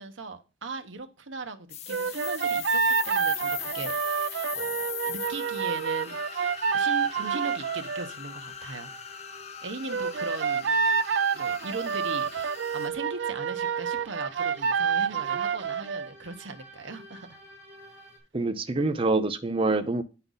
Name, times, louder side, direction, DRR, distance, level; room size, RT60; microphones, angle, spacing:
voice 1, 0.0-6.2 6.7-9.2 9.6-10.8 11.3-17.4, right 3 dB, 85° right, 1.1 m, -39 dB
sound 1, 1.7-12.9, left 10 dB, 35° left, 0.4 m, -40 dB
sound 2, 1.9-8.1 9.9-16.1, right 6 dB, 70° right, 0.4 m, -28 dB
sound 3, 2.9-18.2, equal, 15° left, 4.1 m, -50 dB
voice 2, 18.3-20.0, right 2 dB, 30° right, 0.7 m, -26 dB
9.3 x 5.7 x 3.9 m
head